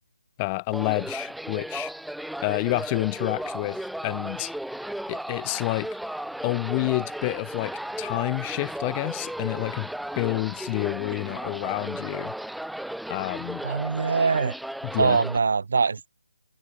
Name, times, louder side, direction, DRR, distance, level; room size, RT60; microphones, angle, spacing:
voice 1, 0.4-1.9 2.4-4.5 5.1-6.0 6.4-9.9 10.2-12.3 13.1-13.6 14.9-15.2, left 26 dB, 20° left, 0.7 m, -29 dB
sound 1, 0.7-15.4, right 1 dB, ahead, 3.3 m, -35 dB
voice 2, 13.6-14.5 15.0-16.1, right 5 dB, 60° right, 3.1 m, -23 dB
figure-of-eight pair, 155°, 0 cm